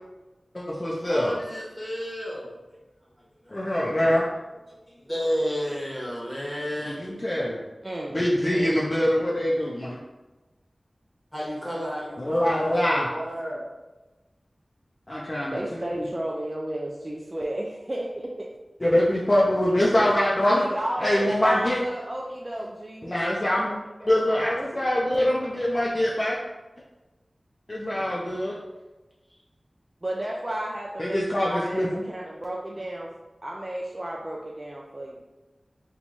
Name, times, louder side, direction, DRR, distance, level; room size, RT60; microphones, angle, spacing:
voice 1, 0.5-1.4 3.5-4.3 6.8-7.6 8.1-10.0 12.2-13.1 15.1-16.1 18.8-20.6 21.0-21.8 23.0-23.8 24.1-26.4 27.7-28.6 31.0-32.0, left 1 dB, 35° left, -5 dB, 0.5 m, -24 dB
voice 2, 1.1-2.6 3.4-4.1 4.9-7.3 11.3-13.6 19.6-20.2 24.0-24.3, equal, 5° left, -4 dB, 1.0 m, -32 dB
voice 3, 7.8-8.9 15.5-18.5 20.5-23.1 27.9-28.3 30.0-33.1 33.4-35.2, right 1 dB, 35° right, -3 dB, 0.4 m, -33 dB
3.0 x 2.3 x 4.0 m, 1.1 s
wide cardioid pair, 70°, 0 cm